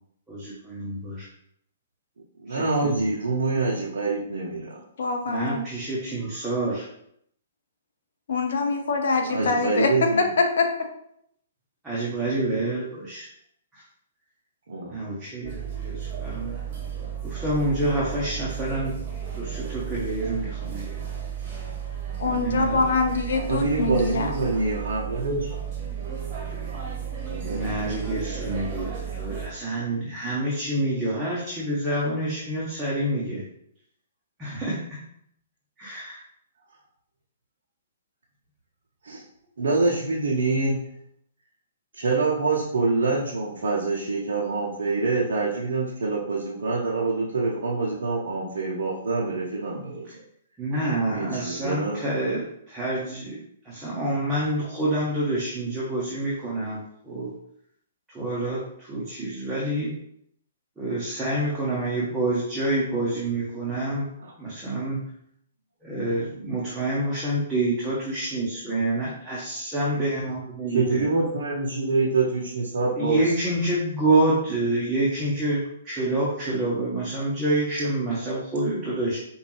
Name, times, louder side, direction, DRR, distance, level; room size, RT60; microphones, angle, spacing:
voice 1, 0.3-1.3 2.5-3.0 5.3-6.9 9.3-9.5 11.8-13.3 13.7-13.8 14.9-16.6 17.2-19.0 19.3-21.0 22.2-22.8 27.4-33.4 34.4-35.0 35.8-36.2 50.1-50.2 50.6-57.3 58.1-59.9 60.8-64.1 64.4-65.1 65.8-71.1 73.0-79.2, right 1 dB, 10° right, -8 dB, 1.1 m, -27 dB
voice 2, 2.4-4.8 9.2-10.3 14.7-15.0 23.3-25.5 27.2-27.7 39.0-39.2 39.6-40.9 41.9-50.2 51.1-52.0 64.2-64.3 70.7-73.3, right 3 dB, 60° right, -4 dB, 0.8 m, -26 dB
voice 3, 5.0-5.7 8.3-10.9 22.2-24.3, left 3 dB, 60° left, 4 dB, 0.6 m, -24 dB
sound 1, 15.4-29.5, right 8 dB, 35° right, 1.2 m, -33 dB
5.0 x 2.6 x 3.2 m, 0.71 s
figure-of-eight pair, 120°, 0 cm